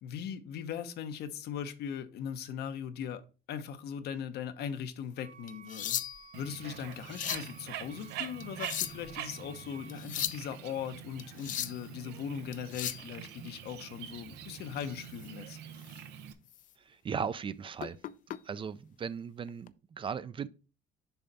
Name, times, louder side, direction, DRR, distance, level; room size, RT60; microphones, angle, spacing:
voice 1, 0.0-3.2 3.5-6.0 6.3-15.6, left 8 dB, 75° left, 0.9 m, -39 dB
Wind instrument woodwind instrument, 5.1-10.1, right 6 dB, 55° right, 0.9 m, -55 dB
sound 1, 5.5-6.4 6.9-7.5 8.4-9.1 9.9-10.4 11.2-11.8 12.5-13.1 15.1-15.3 15.8-16.0 16.5-16.6 17.8-18.4 19.5-19.7, left 11 dB, 50° left, 0.5 m, -36 dB
Bird, 6.3-16.3, right 9 dB, 85° right, 0.8 m, -45 dB
voice 2, 16.8-18.0 18.3-20.5, right 6 dB, 30° right, 0.4 m, -37 dB
7.0 x 4.4 x 3.9 m
cardioid pair, 110°, 17 cm